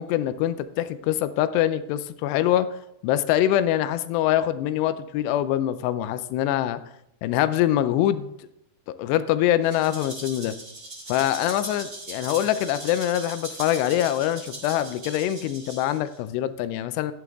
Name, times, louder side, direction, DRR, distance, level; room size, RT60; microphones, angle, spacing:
voice 1, 0.0-2.7 3.0-6.8 7.2-8.3 8.9-10.6 11.1-17.1, left 12 dB, 80° left, 13 dB, 2.6 m, -24 dB
Rattle (instrument), 9.6-16.2, right 1 dB, 25° right, 2.0 m, -39 dB
11.0 x 10.5 x 3.5 m, 0.78 s
omnidirectional pair, 5.0 m